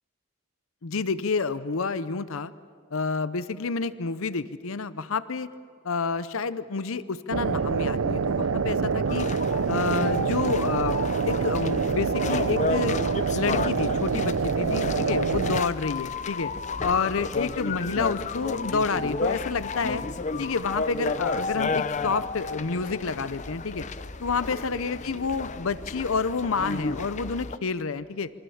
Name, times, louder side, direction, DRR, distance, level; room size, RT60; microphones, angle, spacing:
voice 1, 0.8-2.5 2.9-5.5 5.8-9.3 9.7-11.0 11.2-13.0 13.3-16.5 16.8-20.0 20.4-23.9 24.2-28.3, left 4 dB, 70° left, 15 dB, 0.7 m, -29 dB
sound 1, 7.3-15.6, right 5 dB, 75° right, 0.6 m, -26 dB
sound 2, 9.1-27.6, left 4 dB, 30° left, 0.6 m, -32 dB
28.0 x 24.0 x 7.1 m, 2.4 s
head